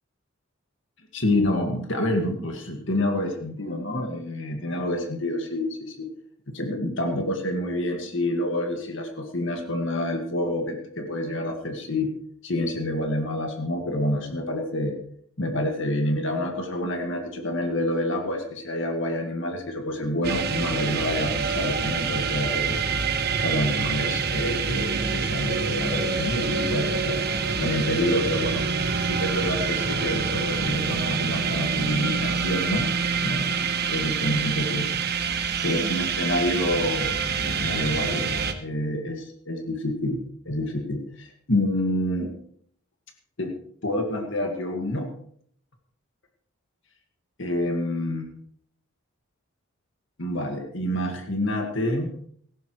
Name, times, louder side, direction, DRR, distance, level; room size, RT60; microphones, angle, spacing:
voice 1, 1.1-6.1 6.5-12.1 12.4-15.0 15.4-22.8 23.4-27.2 27.6-28.7 29.0-32.9 33.2-33.5 33.9-34.9 35.6-38.3 38.6-40.2 40.5-42.3 43.4-43.5 43.8-45.1 47.4-48.3 50.2-52.2, left 1 dB, 60° left, 3 dB, 1.9 m, -27 dB
sound 1, 20.2-38.5, right 5 dB, 45° right, 1.2 m, -26 dB
18.5 x 15.0 x 3.2 m, 0.62 s
head